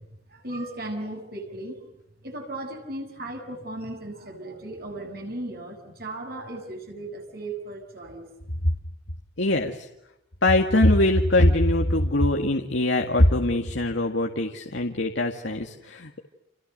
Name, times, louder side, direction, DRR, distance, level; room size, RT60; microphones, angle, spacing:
voice 1, 0.3-1.8 2.2-8.2, right 1 dB, 55° right, 4 dB, 6.6 m, -36 dB
voice 2, 9.4-9.9 10.4-16.2, left 1 dB, 70° left, 3 dB, 2.1 m, -22 dB
30.0 x 29.0 x 6.7 m, 0.86 s
head